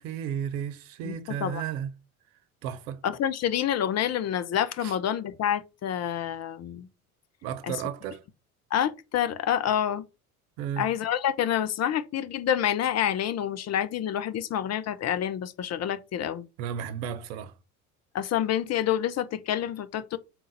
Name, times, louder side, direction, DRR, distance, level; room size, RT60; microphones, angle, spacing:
voice 1, 0.0-1.9 2.6-3.0 4.8-5.0 7.4-8.2 10.6-10.8 16.6-17.5, right 9 dB, 65° right, 0.9 m, -33 dB
voice 2, 1.0-1.6 3.0-6.9 7.6-7.8 8.7-10.0 10.8-16.5 18.1-20.2, left 10 dB, 35° left, 0.8 m, -28 dB
4.6 x 3.8 x 5.4 m
hypercardioid pair, 70°, 43 cm